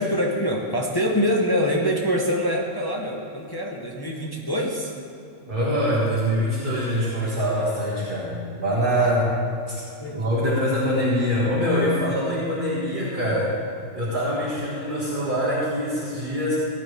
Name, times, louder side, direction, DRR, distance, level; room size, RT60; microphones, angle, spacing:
voice 1, 0.0-4.9 8.9-9.1 10.0-10.2, equal, 20° left, -1 dB, 0.9 m, -25 dB
voice 2, 5.5-9.2 9.7-9.8 10.1-13.6 13.9-16.6, equal, 40° right, -8 dB, 2.1 m, -24 dB
17.0 x 9.7 x 3.5 m, 2.6 s
omnidirectional pair, 1.4 m